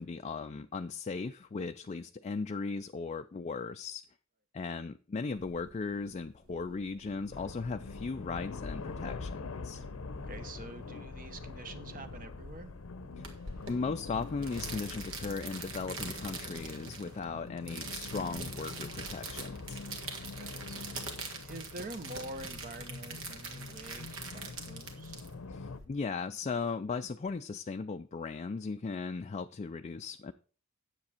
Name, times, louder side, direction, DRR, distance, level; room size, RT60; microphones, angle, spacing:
voice 1, 0.0-4.0 4.5-9.8 13.2-13.3 13.7-19.8 25.5-30.3, left 4 dB, 35° left, 0.4 m, -37 dB
sound 1, 5.3-13.4, equal, 90° right, 2.1 m, -55 dB
sound 2, 7.3-25.8, left 3 dB, 70° left, 0.7 m, -44 dB
voice 2, 10.1-12.7 20.4-20.8 21.4-25.2, right 2 dB, 40° right, 1.1 m, -46 dB
sound 3, 13.2-25.9, right 4 dB, 65° right, 1.8 m, -43 dB
9.7 x 7.6 x 4.3 m
head